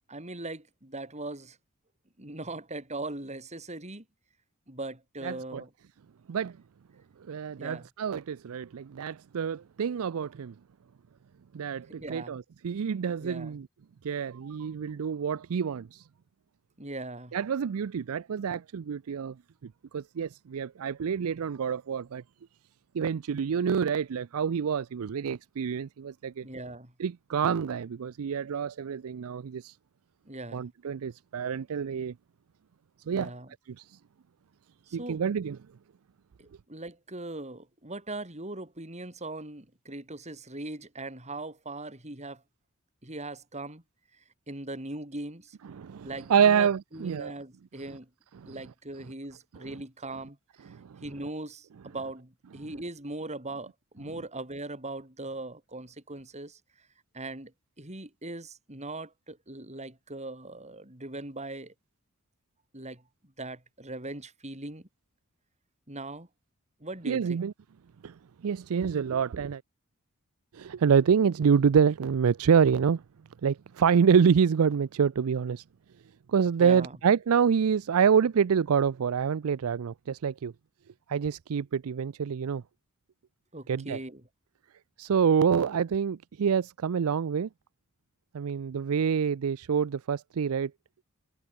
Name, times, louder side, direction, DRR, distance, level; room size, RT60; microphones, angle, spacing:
voice 1, 0.1-1.6 2.2-4.0 4.7-5.7 7.6-7.9 12.0-12.4 13.2-13.6 16.8-17.4 26.4-26.9 30.2-30.7 33.1-33.5 34.9-35.2 36.4-42.4 43.0-43.8 44.1-45.6 46.0-48.1 48.4-50.4 50.6-50.7 51.0-56.9 57.1-61.7 62.7-64.9 65.9-66.3 66.8-67.4 76.6-77.0 83.5-84.2, right 2 dB, 30° right, 5.0 m, -40 dB
voice 2, 5.2-5.6 6.3-6.5 7.3-10.5 11.5-13.7 14.0-16.0 17.3-19.3 19.9-22.2 22.9-26.4 27.0-29.7 30.5-32.1 33.1-33.3 34.9-35.6 45.8-47.3 48.4-48.5 50.7-51.0 67.1-67.5 68.0-68.1 68.4-69.6 70.5-73.0 73.4-75.6 76.3-80.5 81.1-82.6 83.7-84.0 85.0-87.5 88.3-90.7, right 7 dB, 70° right, 0.4 m, -27 dB
head